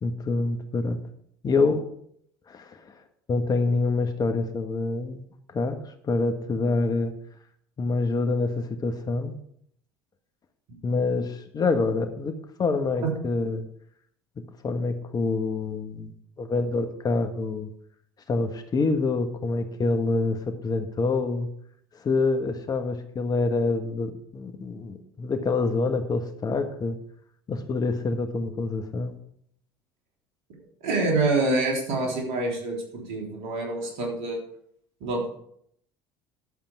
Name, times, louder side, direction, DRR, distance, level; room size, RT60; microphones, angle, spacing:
voice 1, 0.0-1.0 1.4-1.8 2.5-2.8 3.3-5.3 5.5-5.8 6.0-7.1 7.8-9.3 10.8-13.6 14.4-16.1 16.4-17.7 18.3-21.5 21.9-27.0 27.5-29.2, left 3 dB, 35° left, 7 dB, 1.4 m, -26 dB
voice 2, 30.8-34.4 35.0-35.3, right 2 dB, 70° right, 0 dB, 3.5 m, -26 dB
11.5 x 7.4 x 4.8 m, 0.68 s
hypercardioid pair, 70°, 11 cm